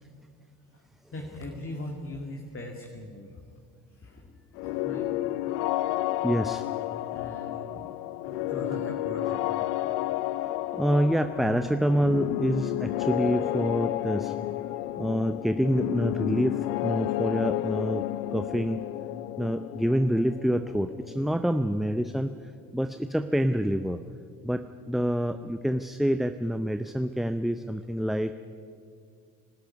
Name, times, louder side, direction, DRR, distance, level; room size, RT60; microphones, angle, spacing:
voice 1, 1.1-3.3 4.0-5.1 7.1-7.9 8.3-9.7, left 1 dB, 25° left, 2 dB, 2.4 m, -40 dB
sound 1, 4.6-22.2, left 15 dB, 65° left, 0.8 m, -31 dB
voice 2, 6.2-6.7 10.7-14.3 15.0-18.8 19.4-22.3 22.7-24.0 24.4-28.3, equal, ahead, 10 dB, 0.6 m, -27 dB
24.0 x 13.0 x 9.6 m, 2.3 s
hypercardioid pair, 60°, 48 cm